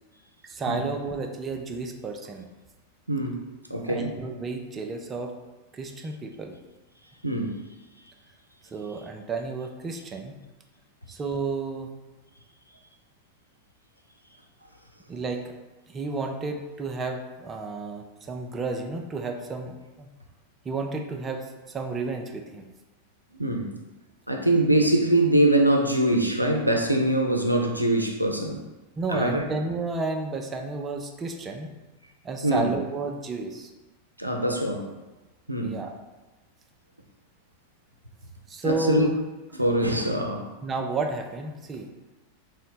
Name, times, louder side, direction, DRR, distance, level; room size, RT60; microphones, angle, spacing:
voice 1, 0.4-2.5 3.9-5.3 5.7-6.6 8.7-10.4 11.1-11.9 15.1-15.5 15.9-20.1 20.6-22.7 29.0-31.7 32.2-33.7 35.6-35.9 38.5-39.1 40.6-41.9, right 3 dB, 20° right, 3 dB, 0.5 m, -32 dB
voice 2, 3.1-3.4 3.7-4.1 7.2-7.5 23.4-23.7 24.3-28.6 29.1-29.4 32.4-32.7 34.2-34.9 35.5-35.8 38.6-39.1 39.5-40.5, right 1 dB, 90° right, 2 dB, 0.4 m, -23 dB
3.7 x 2.1 x 4.2 m, 1.1 s
figure-of-eight pair, 90°, 0 cm